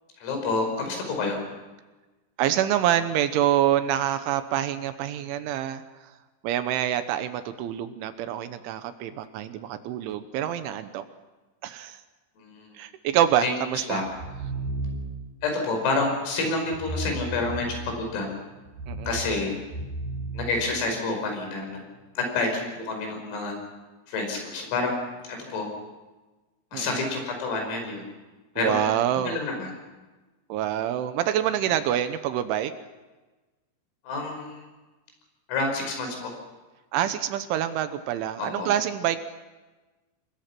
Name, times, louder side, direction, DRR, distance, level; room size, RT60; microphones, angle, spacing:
voice 1, 0.2-1.4 12.4-12.7 13.4-13.5 13.9-14.1 15.4-18.3 19.1-19.6 20.3-21.8 22.2-23.6 24.1-25.0 25.3-25.7 26.7-28.1 28.6-28.8 29.2-29.8 34.0-34.6 35.5-36.3 38.4-38.7, left 3 dB, 80° left, 3 dB, 8.2 m, -28 dB
voice 2, 2.4-5.8 6.4-11.0 11.6-12.0 12.8-14.0 18.9-19.1 26.7-27.0 28.6-29.4 30.5-32.7 36.9-39.3, right 11 dB, 75° right, 10 dB, 3.2 m, -26 dB
sound 1, 14.1-15.3 16.7-18.1 18.6-21.2, right 2 dB, 50° right, 4.2 m, -34 dB
28.0 x 22.0 x 6.0 m, 1.2 s
omnidirectional pair, 6.0 m